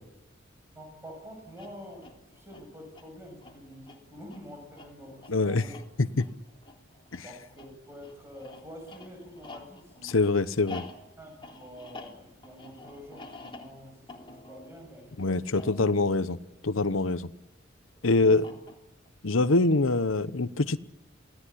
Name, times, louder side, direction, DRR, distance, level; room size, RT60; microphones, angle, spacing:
voice 1, 0.7-5.8 7.2-10.2 11.2-15.7 18.1-18.5 19.6-19.8, equal, 15° right, 3 dB, 7.1 m, -47 dB
sound 1, 1.4-17.2 18.2-19.1, left 3 dB, 25° left, 3.5 m, -49 dB
voice 2, 5.3-5.6 6.0-6.3 7.1-7.2 10.0-10.8 15.2-16.4 16.6-17.3 18.0-18.4 19.2-20.8, left 3 dB, 85° left, 13 dB, 1.0 m, -24 dB
27.5 x 18.0 x 10.0 m, 0.89 s
head